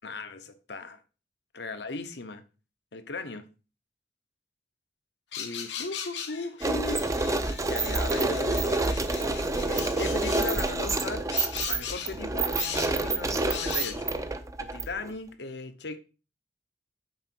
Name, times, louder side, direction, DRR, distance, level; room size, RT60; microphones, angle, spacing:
voice 1, 0.0-1.0 1.5-2.4 2.9-3.4 5.4-7.0 7.6-9.0 9.7-11.3 11.7-14.1 14.6-16.0, left 3 dB, 70° left, 0.8 m, -37 dB
sound 1, 5.3-10.5 11.3-12.1 12.6-12.9 13.5-13.9, left 8 dB, 90° left, 1.1 m, -38 dB
sound 2, 6.6-15.1, right 2 dB, 20° right, 0.5 m, -28 dB
6.5 x 4.6 x 4.4 m
head